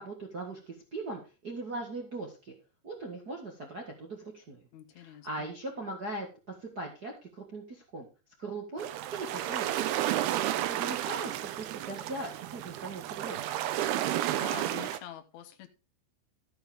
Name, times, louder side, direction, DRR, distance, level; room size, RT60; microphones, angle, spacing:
voice 1, 0.0-2.5 2.8-4.6 4.9-6.3 6.6-8.1 8.4-8.8 9.1-10.0 10.7-13.6, right 2 dB, 55° right, -1 dB, 1.0 m, -40 dB
voice 2, 4.7-5.5 14.3-15.7, left 10 dB, 75° left, 6 dB, 1.7 m, -46 dB
sound 1, 8.8-15.0, right 12 dB, 75° right, 2.5 m, -32 dB
14.0 x 8.0 x 3.6 m, 0.30 s
omnidirectional pair, 5.1 m